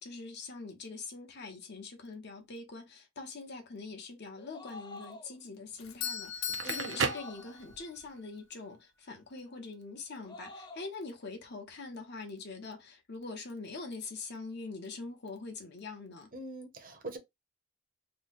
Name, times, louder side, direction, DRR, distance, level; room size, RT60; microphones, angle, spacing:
voice 1, 0.0-16.3, left 3 dB, 50° left, 1.0 m, -43 dB
sound 1, 4.3-5.4 7.1-7.8 10.1-10.9, left 2 dB, 20° left, 0.4 m, -48 dB
Doorbell, 5.8-7.9, left 8 dB, 70° left, 0.5 m, -39 dB
Crackle, 6.3-8.1, right 5 dB, 55° right, 0.5 m, -35 dB
voice 2, 6.6-7.0 16.3-17.2, right 2 dB, 40° right, 0.9 m, -43 dB
3.1 x 2.2 x 4.0 m
head